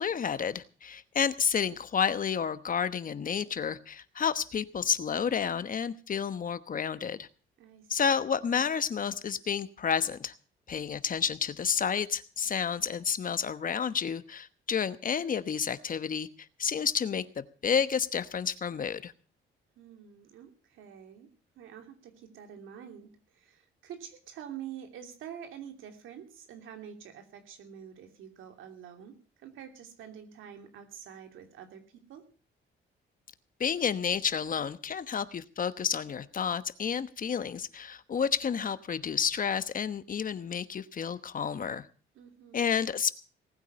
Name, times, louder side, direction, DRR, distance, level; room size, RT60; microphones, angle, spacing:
voice 1, 0.0-7.3 7.9-10.3 10.7-16.3 16.6-19.1 33.6-41.9 42.5-43.1, left 7 dB, 45° left, 13 dB, 1.1 m, -30 dB
voice 2, 7.6-8.0 19.8-21.3 21.5-32.2 42.1-42.7, right 9 dB, 85° right, 5 dB, 2.8 m, -47 dB
19.0 x 9.2 x 6.8 m, 0.39 s
cardioid pair, 90°, 20 cm